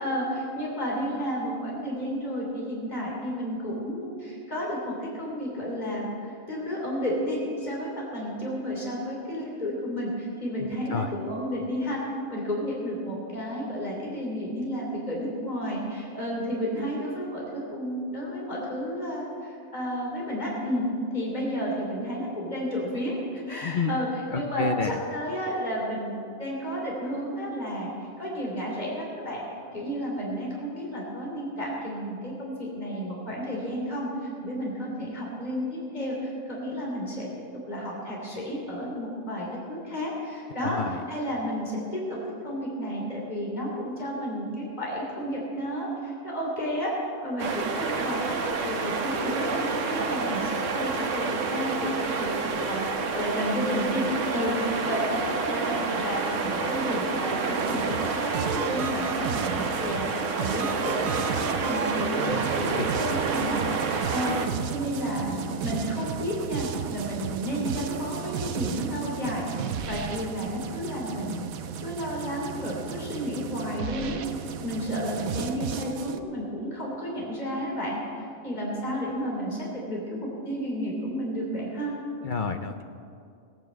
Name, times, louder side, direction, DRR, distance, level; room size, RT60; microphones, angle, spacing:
voice 1, 0.0-12.0 12.3-20.8 21.1-24.1 24.3-27.9 28.2-29.4 29.7-34.1 34.4-37.3 37.5-40.8 41.1-42.2 42.4-48.4 48.6-49.5 49.8-52.8 53.1-60.1 60.4-71.4 71.8-82.0, equal, 30° left, -3 dB, 3.3 m, -31 dB
voice 2, 23.6-25.0 40.6-41.0 62.2-62.3 62.6-63.1 82.2-82.8, left 5 dB, 50° left, 7 dB, 0.6 m, -30 dB
sound 1, 47.4-64.5, right 4 dB, 60° right, 1.4 m, -29 dB
sound 2, 57.6-76.2, right 8 dB, 85° right, 1.2 m, -33 dB
17.5 x 9.3 x 7.5 m, 2.5 s
omnidirectional pair, 1.5 m